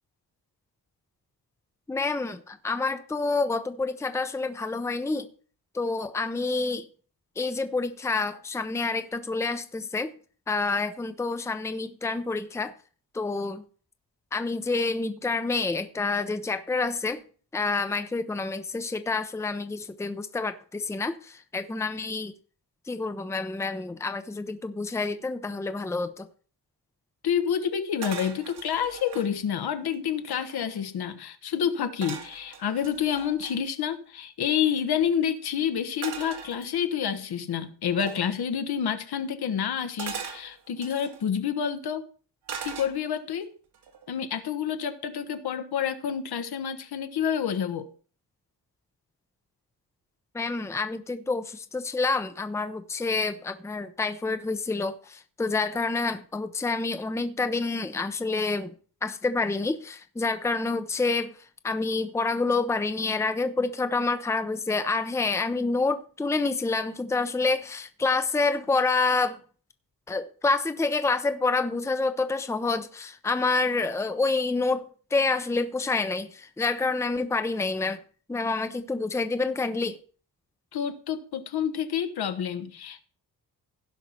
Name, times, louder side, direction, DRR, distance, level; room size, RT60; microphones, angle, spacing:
voice 1, 1.9-5.3 5.7-6.9 7.4-10.1 10.5-12.7 13.1-13.6 14.3-17.2 17.5-22.3 22.9-26.3 50.3-58.7 59.0-61.3 61.6-69.4 70.1-78.0 78.3-80.0, left 3 dB, 5° left, 0.6 m, -28 dB
voice 2, 27.2-42.0 42.6-43.5 44.1-47.9 80.7-83.0, left 8 dB, 70° left, 1.2 m, -28 dB
sound 1, 28.0-29.3 29.9-30.0 30.2-30.8 32.0-33.6 36.0-37.1 38.0-38.3 40.0-41.2 42.5-43.3 43.7-44.1, right 7 dB, 80° right, 2.1 m, -39 dB
16.5 x 5.5 x 4.4 m
cardioid pair, 125°, 40 cm